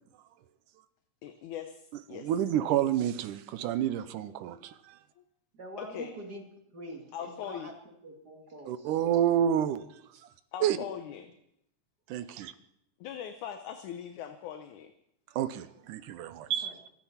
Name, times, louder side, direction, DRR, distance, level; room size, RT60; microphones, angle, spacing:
voice 1, 1.2-2.3 5.2-5.3 5.8-6.1 7.1-7.7 10.5-11.3 13.0-14.9, left 9 dB, 70° left, 7 dB, 2.2 m, -40 dB
voice 2, 2.1-5.0 8.7-9.9 10.6-10.8 12.1-12.5 15.4-16.7, right 10 dB, 75° right, 12 dB, 2.3 m, -29 dB
voice 3, 5.5-9.0 12.3-12.4 16.3-16.8, right 1 dB, 35° right, 2 dB, 2.3 m, -46 dB
25.0 x 9.0 x 5.8 m, 0.77 s
omnidirectional pair, 3.9 m